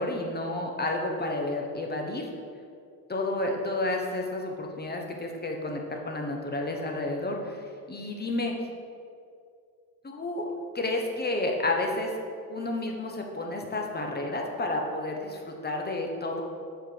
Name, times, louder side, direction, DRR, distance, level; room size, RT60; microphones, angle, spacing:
voice 1, 0.0-2.3 3.1-7.6 7.9-8.5 10.0-10.4 10.7-12.1 12.5-16.4, left 2 dB, 20° left, 1 dB, 1.2 m, -31 dB
7.1 x 4.6 x 4.7 m, 2.3 s
supercardioid pair, 70°, 45 cm